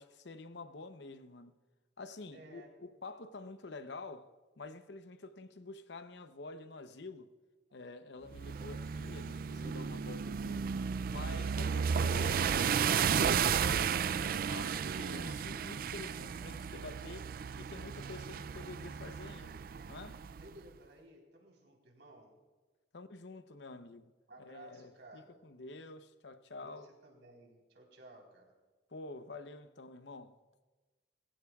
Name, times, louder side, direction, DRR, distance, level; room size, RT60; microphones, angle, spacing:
voice 1, 0.0-1.6 2.0-7.3 7.7-10.7 11.1-20.3 22.9-24.1 24.4-26.9 28.9-30.4, left 3 dB, 70° left, 0.7 m, -48 dB
voice 2, 2.3-2.7 11.4-12.1 20.4-22.3 24.3-25.4 26.6-28.5, right 1 dB, 75° right, 3.9 m, -56 dB
sound 1, 8.3-20.5, right 7 dB, 50° right, 0.3 m, -34 dB
22.0 x 15.5 x 2.4 m
head